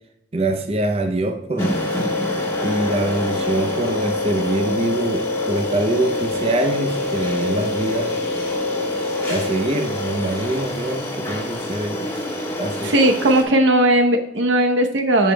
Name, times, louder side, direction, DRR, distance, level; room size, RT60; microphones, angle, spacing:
voice 1, 0.3-1.8 2.6-8.1 9.3-12.1 12.6-12.9, right 1 dB, 30° right, 5 dB, 0.5 m, -24 dB
sound 1, 1.6-13.4, left 2 dB, 15° left, 1.3 m, -25 dB
voice 2, 12.8-15.3, right 1 dB, 85° right, 4 dB, 0.9 m, -17 dB
13.5 x 5.1 x 2.2 m, 0.83 s
head